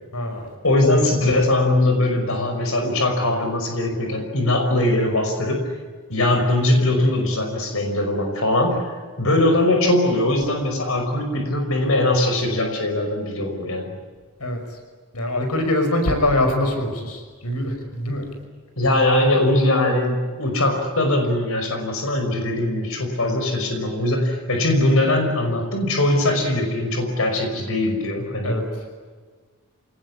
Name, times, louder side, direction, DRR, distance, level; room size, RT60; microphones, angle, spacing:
voice 1, 0.1-0.5 14.4-14.6 15.1-18.3 23.2-23.4 28.4-28.7, left 1 dB, 90° left, 5 dB, 5.7 m, -23 dB
voice 2, 0.6-5.7 6.1-8.9 9.2-14.0 18.8-28.6, left 1 dB, 65° left, 4 dB, 5.5 m, -21 dB
28.0 x 19.0 x 9.9 m, 1.5 s
head